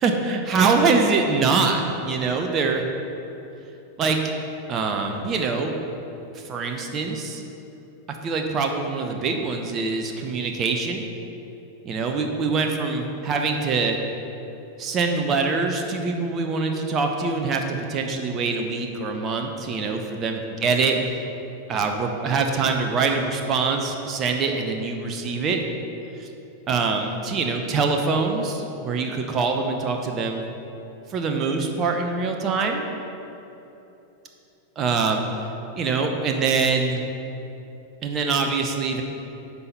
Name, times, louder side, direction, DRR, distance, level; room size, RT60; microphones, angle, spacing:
voice 1, 0.0-2.8 4.0-4.3 4.7-5.8 6.3-7.4 8.2-11.0 11.8-14.0 14.8-21.0 21.7-25.6 26.2-26.3 26.7-30.4 31.1-32.8 34.8-35.2 35.8-37.0 38.0-39.0, right 4 dB, 30° right, 3 dB, 0.9 m, -24 dB
9.5 x 6.0 x 5.5 m, 3.0 s
figure-of-eight pair, 90°, 0 cm